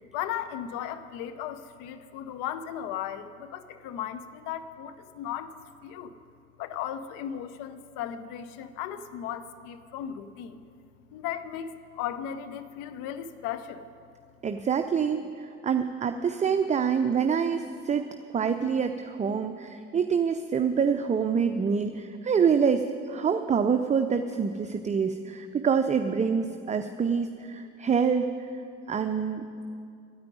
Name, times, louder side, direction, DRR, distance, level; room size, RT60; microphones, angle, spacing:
voice 1, 0.1-5.6 5.8-6.1 6.6-10.6 11.1-13.9, left 10 dB, 60° left, 11 dB, 0.8 m, -36 dB
voice 2, 14.4-18.1 18.3-28.3 28.9-29.6, right 6 dB, 20° right, 7 dB, 0.5 m, -26 dB
9.6 x 8.8 x 9.9 m, 2.4 s
figure-of-eight pair, 45°, 36 cm